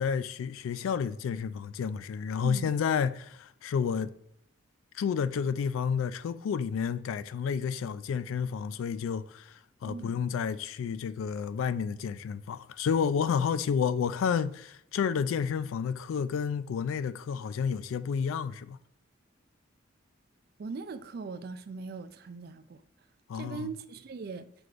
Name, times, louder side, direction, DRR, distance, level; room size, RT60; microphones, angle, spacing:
voice 1, 0.0-4.1 4.9-18.8 23.3-23.7, left 7 dB, 90° left, 0.3 m, -30 dB
voice 2, 9.8-10.2 20.6-22.8 23.3-24.5, right 4 dB, 50° right, 0.3 m, -40 dB
5.9 x 3.3 x 2.4 m
head